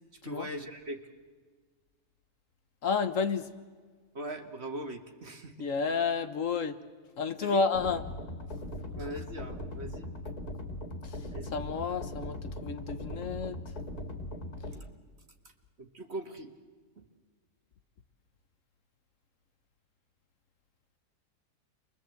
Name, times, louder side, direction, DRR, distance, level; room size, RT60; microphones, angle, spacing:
voice 1, 0.2-1.1 4.1-5.7 7.4-7.6 8.9-10.1 11.3-11.6 15.8-16.5 17.0-17.1, right 1 dB, 45° right, 5 dB, 2.0 m, -40 dB
voice 2, 2.8-3.5 5.6-6.8 7.2-8.0 11.5-13.6, left 5 dB, 60° left, 9 dB, 1.3 m, -30 dB
sound 1, 7.7-14.7, left 1 dB, 85° left, 2.9 m, -40 dB
29.5 x 22.5 x 7.9 m, 1.5 s
omnidirectional pair, 1.6 m